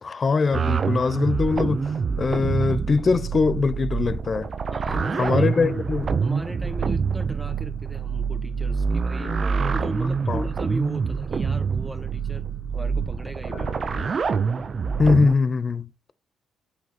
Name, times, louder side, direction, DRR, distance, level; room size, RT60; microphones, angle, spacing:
voice 1, 0.0-4.5 5.2-6.1 10.3-10.4 15.0-15.9, left 4 dB, 40° left, 0.8 m, -22 dB
sound 1, 0.5-15.3, right 5 dB, 45° right, 0.8 m, -26 dB
sound 2, 1.9-4.5 4.9-14.1, left 6 dB, 65° left, 2.0 m, -47 dB
voice 2, 4.7-5.7 6.2-12.4 12.7-13.9, right 1 dB, 10° right, 1.9 m, -37 dB
8.5 x 7.6 x 5.9 m
cardioid pair, 90°, 0 cm